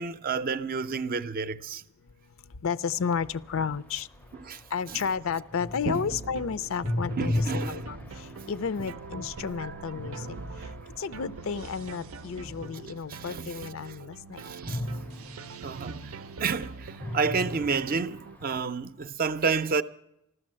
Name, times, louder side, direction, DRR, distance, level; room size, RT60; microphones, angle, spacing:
voice 1, 0.0-1.8 4.4-4.6 4.9-5.0 5.9-6.0 7.2-7.8 10.6-10.7 13.1-13.4 14.4-14.8 15.6-19.8, right 5 dB, 45° right, 0.5 m, -30 dB
voice 2, 2.4-4.3 4.7-10.7 11.0-14.4, left 6 dB, 70° left, 0.5 m, -32 dB
sound 1, 3.1-13.3 14.7-16.6 16.9-18.6, left 1 dB, 10° left, 0.5 m, -37 dB
sound 2, 5.9-18.4, right 4 dB, 90° right, 0.6 m, -44 dB
14.0 x 13.0 x 7.5 m
head